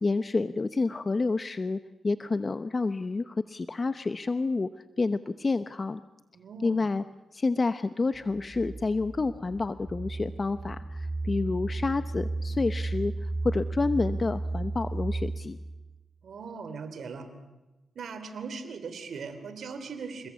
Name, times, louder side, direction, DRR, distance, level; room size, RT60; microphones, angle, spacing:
voice 1, 0.0-1.8 2.0-4.7 5.0-6.0 6.6-7.0 7.3-15.6, left 3 dB, 40° left, 11 dB, 0.9 m, -29 dB
voice 2, 6.3-6.8 16.2-17.2 18.0-20.3, right 5 dB, 70° right, 9 dB, 3.4 m, -39 dB
sound 1, 8.1-16.0, right 2 dB, 25° right, 1.8 m, -34 dB
28.5 x 19.5 x 8.5 m, 1.1 s
cardioid pair, 60°, 0 cm